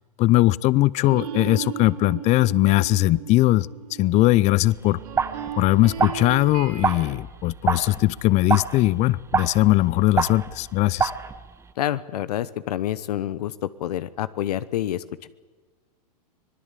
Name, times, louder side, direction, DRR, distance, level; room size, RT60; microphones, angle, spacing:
voice 1, 0.2-3.7 4.0-5.0 5.6-11.1, left 18 dB, 35° left, 22 dB, 0.6 m, -20 dB
sound 1, 1.1-7.1, right 9 dB, 70° right, 6.1 m, -36 dB
sound 2, 4.8-11.7, right 5 dB, 15° right, 1.0 m, -28 dB
voice 2, 11.8-15.3, left 12 dB, 75° left, 15 dB, 1.0 m, -28 dB
24.5 x 19.5 x 8.3 m, 1.5 s
hypercardioid pair, 130°, 20 cm